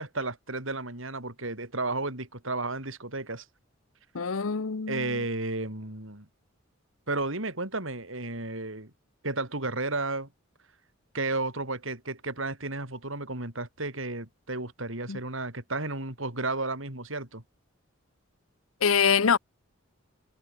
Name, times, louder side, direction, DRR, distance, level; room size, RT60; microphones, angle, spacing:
voice 1, 0.0-3.5 4.9-6.3 7.1-8.9 9.2-10.3 11.1-17.4, right 2 dB, 70° right, 5.3 m, -33 dB
voice 2, 4.1-5.2 15.1-15.2 18.8-19.4, left 6 dB, 75° left, 0.8 m, -25 dB
head